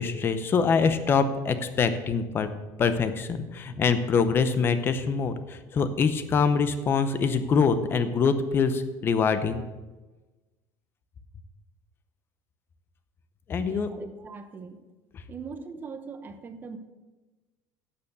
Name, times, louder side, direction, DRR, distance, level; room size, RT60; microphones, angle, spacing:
voice 1, 0.0-2.5 2.8-9.6 13.5-13.9, left 5 dB, 25° left, 11 dB, 0.8 m, -24 dB
voice 2, 13.6-14.8 15.3-16.8, right 5 dB, 25° right, 9 dB, 0.9 m, -41 dB
11.0 x 7.0 x 6.7 m, 1.2 s
cardioid pair, 160°, 8 cm